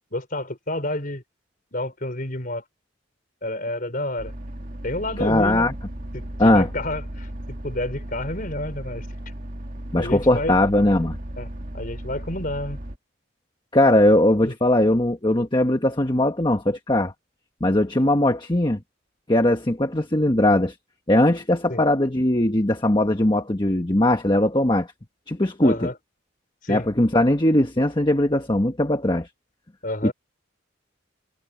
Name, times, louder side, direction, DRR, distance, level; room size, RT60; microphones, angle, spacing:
voice 1, 0.1-1.2 1.7-2.6 3.4-4.3 4.8-5.7 6.1-9.1 9.9-10.6 11.4-11.5 11.7-12.8 14.4-14.5 21.7-21.8 25.6-26.0 26.6-26.9 29.8-30.1, left 1 dB, 45° left, 4.9 m, -29 dB
sound 1, 4.2-13.0, right 1 dB, 40° right, 2.1 m, -35 dB
voice 2, 5.2-5.7 6.4-6.7 9.9-11.2 13.7-17.1 17.6-18.8 19.3-20.7 21.1-24.9 25.3-25.9 26.7-29.3 30.0-30.1, left 1 dB, 25° left, 1.3 m, -20 dB
head